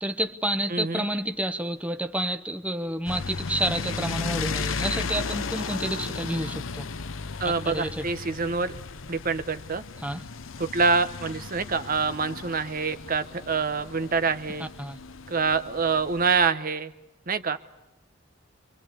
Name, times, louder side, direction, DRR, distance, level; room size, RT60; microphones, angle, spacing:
voice 1, 0.0-6.9 7.6-8.1 10.0-10.2 14.6-15.0, right 1 dB, 5° right, 8 dB, 1.1 m, -29 dB
voice 2, 0.7-1.0 7.4-8.7 9.1-9.8 10.6-14.7 15.3-16.9 17.3-17.6, right 4 dB, 45° right, 10 dB, 1.0 m, -26 dB
sound 1, 3.1-16.5, left 4 dB, 85° left, 0.9 m, -35 dB
27.5 x 23.5 x 8.4 m, 0.91 s
head